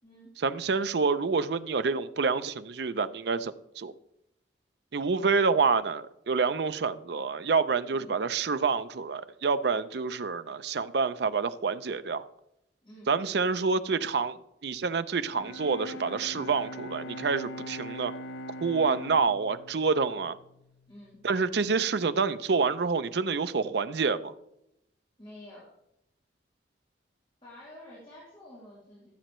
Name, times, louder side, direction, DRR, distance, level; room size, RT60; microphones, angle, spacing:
voice 1, 0.4-3.9 4.9-12.3 13.1-18.1 18.6-20.4 21.2-24.3, right 5 dB, 60° right, 0.5 m, -27 dB
voice 2, 12.8-13.1 20.9-21.2 25.2-25.7 27.4-29.1, left 1 dB, 30° left, 3.0 m, -49 dB
Bowed string instrument, 15.2-21.3, equal, 75° left, 0.5 m, -42 dB
14.5 x 7.7 x 3.1 m
head